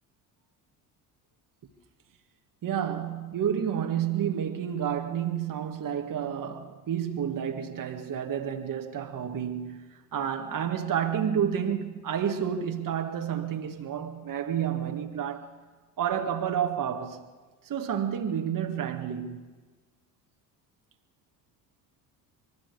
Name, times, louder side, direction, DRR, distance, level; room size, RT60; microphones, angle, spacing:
voice 1, 2.6-15.5 16.0-17.2 17.6-19.5, right 8 dB, 40° right, 1.9 m, -30 dB
25.5 x 21.5 x 6.9 m
hypercardioid pair, 60°, 48 cm